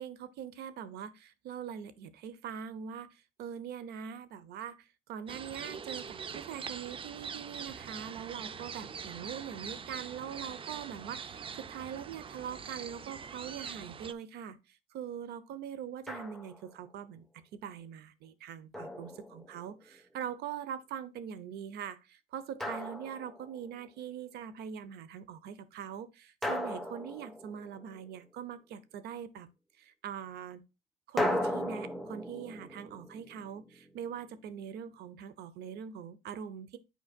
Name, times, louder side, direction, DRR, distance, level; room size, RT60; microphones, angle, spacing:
voice 1, 0.0-17.3 17.5-29.5 29.8-30.6 31.1-36.8, right 8 dB, 75° right, 0.8 m, -42 dB
sound 1, 5.3-14.1, right 6 dB, 30° right, 0.5 m, -43 dB
Drum, 16.1-16.8 18.7-19.8 22.6-23.8 26.4-28.1 31.2-34.1, left 1 dB, ahead, 1.0 m, -37 dB
9.3 x 4.8 x 2.3 m
cardioid pair, 110°, 17 cm